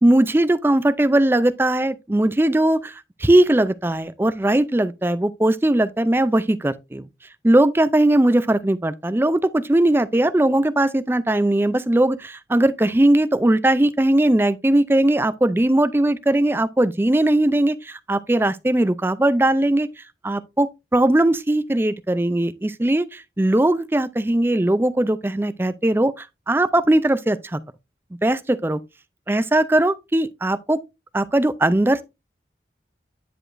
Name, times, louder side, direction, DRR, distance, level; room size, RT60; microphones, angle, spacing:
voice 1, 0.0-7.1 7.4-19.9 20.2-27.6 28.2-28.8 29.3-30.8 31.1-32.0, right 1 dB, 15° right, 0.4 m, -19 dB
9.9 x 4.8 x 2.5 m
head